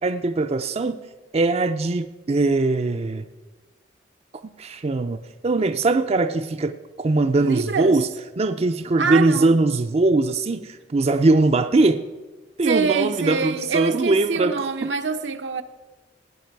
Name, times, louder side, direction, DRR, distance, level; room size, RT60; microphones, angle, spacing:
voice 1, 0.0-1.0 1.3-3.2 4.6-5.2 5.4-8.1 8.4-12.0 12.6-14.9, right 2 dB, 35° right, 0.4 m, -21 dB
voice 2, 7.4-8.0 9.0-9.5 12.6-15.6, right 5 dB, 80° right, 0.8 m, -25 dB
16.5 x 9.6 x 4.6 m
head